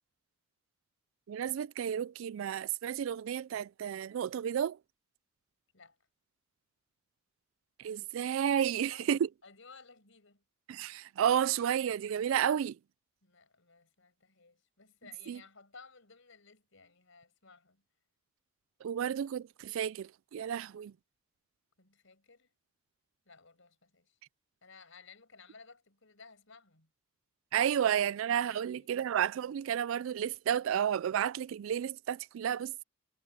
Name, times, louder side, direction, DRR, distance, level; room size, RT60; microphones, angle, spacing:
voice 1, 1.3-4.8 7.8-9.3 10.7-12.8 15.3-15.4 18.8-20.9 27.5-32.8, right 9 dB, 70° right, 0.3 m, -31 dB
voice 2, 8.4-9.1 9.4-10.4 13.2-17.8 21.8-22.5 23.3-24.2 24.6-26.9 27.9-29.1, left 4 dB, 65° left, 5.6 m, -57 dB
head